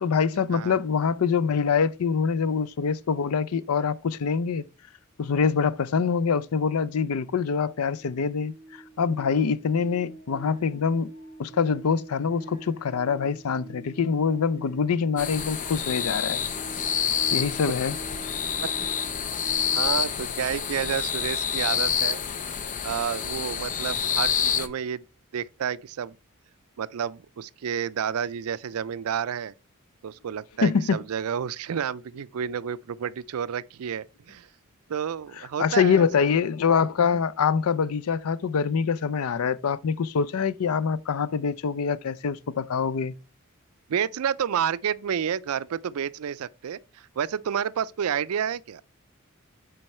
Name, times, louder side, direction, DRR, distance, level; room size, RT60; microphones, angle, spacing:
voice 1, 0.0-4.6 5.2-8.5 9.0-11.1 11.4-16.4 17.3-18.0 30.6-31.0 35.6-43.1, left 6 dB, 90° left, 0.5 m, -25 dB
sound 1, 7.9-19.9, right 2 dB, 70° left, 3.0 m, -45 dB
sound 2, 15.2-24.7, left 8 dB, 35° left, 0.6 m, -28 dB
voice 2, 19.7-22.2 22.5-25.0 25.3-26.2 26.8-29.5 30.0-34.5 34.9-36.3 43.9-48.8, right 8 dB, 85° right, 0.4 m, -30 dB
7.7 x 4.6 x 4.2 m
head